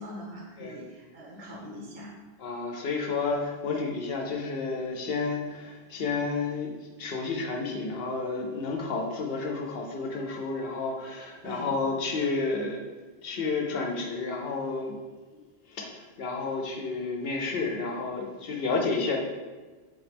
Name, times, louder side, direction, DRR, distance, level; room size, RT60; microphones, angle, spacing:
voice 1, 0.0-2.1 11.4-11.7, equal, 40° right, -4 dB, 0.7 m, -42 dB
voice 2, 2.4-6.7 7.0-12.8 13.2-15.0 15.3-15.4 15.7-19.2, left 4 dB, 65° left, 1 dB, 0.7 m, -31 dB
3.8 x 3.0 x 3.3 m, 1.3 s
omnidirectional pair, 1.2 m